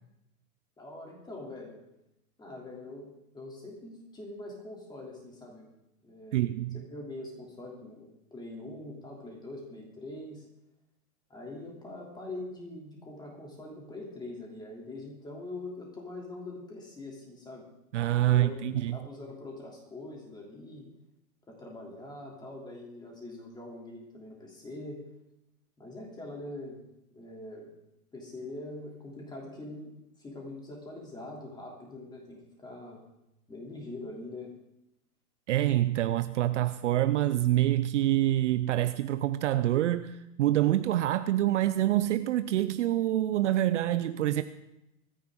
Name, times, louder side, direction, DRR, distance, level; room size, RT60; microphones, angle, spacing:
voice 1, 0.8-1.8 2.4-5.7 6.0-6.4 6.7-10.4 11.3-17.6 18.2-18.6 18.9-20.9 21.5-25.0 25.8-26.8 27.1-27.7 28.1-29.9 30.2-33.0 33.5-34.5, left 2 dB, 10° left, 3.1 m, -43 dB
voice 2, 6.3-6.8 17.9-19.0 35.5-44.4, right 14 dB, 50° right, 0.6 m, -26 dB
24.0 x 10.0 x 3.8 m
hypercardioid pair, 145°, 45 cm